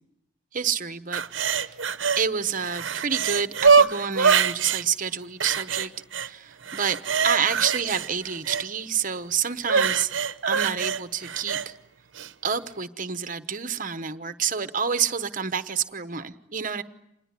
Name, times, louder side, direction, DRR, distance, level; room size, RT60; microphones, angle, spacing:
voice 1, 0.5-1.2 1.6-1.7 2.2-7.0 7.2-10.1 10.5-11.8 12.4-16.8, right 7 dB, 40° right, 11 dB, 1.1 m, -28 dB
sound 1, 1.1-2.2 2.6-4.8 5.4-6.3 6.6-8.7 9.6-11.7 12.2-12.3, right 6 dB, 65° right, 0.9 m, -23 dB
27.0 x 20.0 x 9.8 m, 0.84 s
head